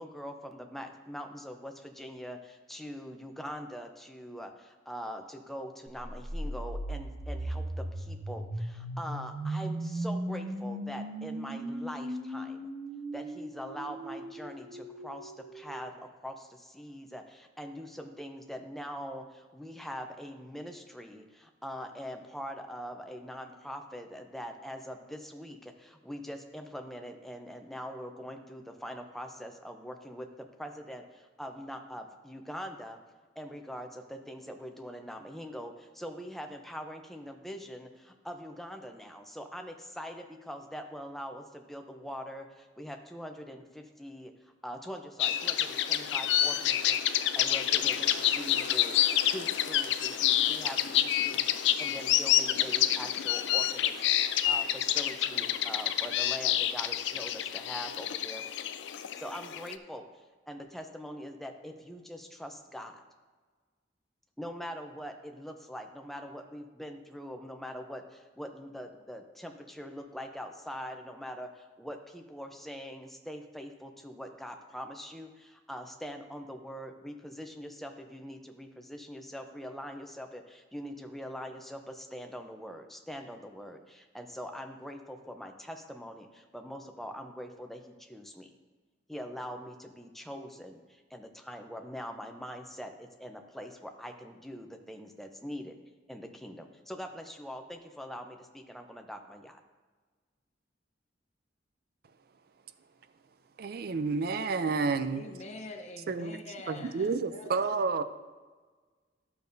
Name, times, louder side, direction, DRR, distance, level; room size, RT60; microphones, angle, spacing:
voice 1, 0.0-12.7 13.1-33.0 33.4-58.5 59.1-63.0 64.4-88.5 89.1-95.8 96.1-99.6, equal, ahead, 0.6 m, -43 dB
sound 1, 6.0-15.9, right 1 dB, 80° right, 1.0 m, -37 dB
sound 2, 45.2-59.7, left 11 dB, 70° left, 0.4 m, -28 dB
voice 2, 103.6-105.2 106.1-106.4 106.7-108.0, right 4 dB, 55° right, 0.4 m, -30 dB
voice 3, 105.1-106.9 107.3-107.6, left 2 dB, 40° left, 0.8 m, -44 dB
12.0 x 6.7 x 2.6 m
head